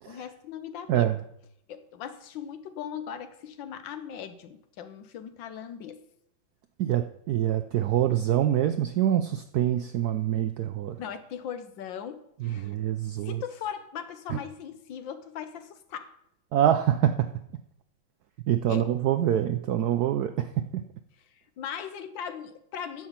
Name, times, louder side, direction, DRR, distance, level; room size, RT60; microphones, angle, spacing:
voice 1, 0.1-1.1 1.7-6.0 11.0-12.7 13.2-16.1 18.7-18.8 21.6-23.1, left 8 dB, 70° left, 11 dB, 1.4 m, -39 dB
voice 2, 0.9-1.2 6.8-11.0 12.4-13.4 14.3-14.4 16.5-17.3 18.5-20.8, right 11 dB, 75° right, 9 dB, 0.9 m, -25 dB
10.5 x 7.3 x 5.8 m, 0.76 s
omnidirectional pair, 2.2 m